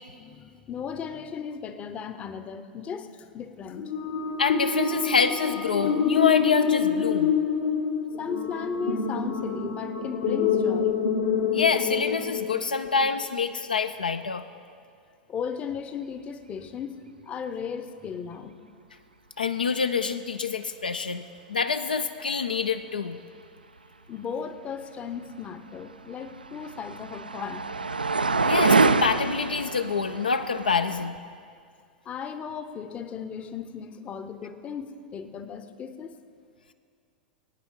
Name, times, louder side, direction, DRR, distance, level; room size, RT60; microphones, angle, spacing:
voice 1, 0.2-3.9 8.2-11.0 15.3-18.6 24.1-27.7 32.1-36.2, left 6 dB, 25° left, 10 dB, 0.7 m, -36 dB
sound 1, 3.8-13.1, left 6 dB, 60° left, 1.0 m, -26 dB
voice 2, 4.4-7.3 11.5-14.4 19.4-21.2 21.5-23.2 28.4-31.1, left 5 dB, 75° left, 9 dB, 0.4 m, -26 dB
sound 2, 25.8-31.1, right 4 dB, 80° right, 0.3 m, -26 dB
20.0 x 9.3 x 3.7 m, 2.2 s
figure-of-eight pair, 90°, 5 cm